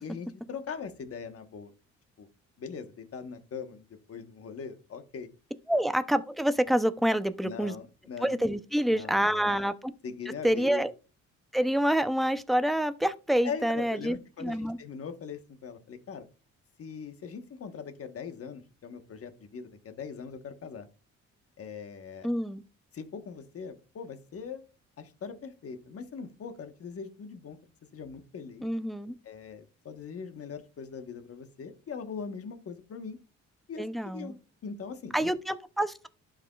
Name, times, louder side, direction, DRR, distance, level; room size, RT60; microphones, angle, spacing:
voice 1, 0.0-1.7 2.2-2.3 2.6-5.3 7.4-8.4 8.9-9.5 10.0-10.8 13.4-16.3 16.8-20.9 21.6-22.3 22.9-24.6 25.0-27.6 27.9-28.7 29.2-33.2 33.7-34.3 34.6-35.3, left 6 dB, 50° left, 1.2 m, -41 dB
voice 2, 5.7-7.7 8.2-9.9 10.4-10.9 11.5-14.8 22.2-22.6 28.6-29.2 33.8-34.3 35.1-36.1, equal, ahead, 0.5 m, -27 dB
11.5 x 5.0 x 2.3 m
cardioid pair, 90°, 30 cm